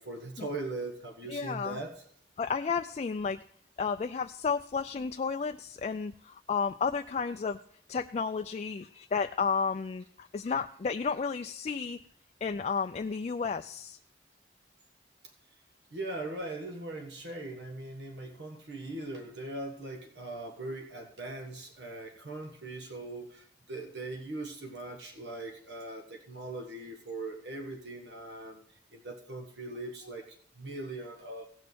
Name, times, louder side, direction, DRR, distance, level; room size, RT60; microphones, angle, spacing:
voice 1, 0.0-2.0 15.9-28.6 28.9-31.5, right 2 dB, 70° right, 4 dB, 1.5 m, -40 dB
voice 2, 1.3-1.8 2.4-3.4 3.8-7.6 7.9-12.0 12.4-14.0, left 5 dB, 35° left, 6 dB, 0.3 m, -32 dB
17.0 x 6.2 x 4.5 m, 0.63 s
head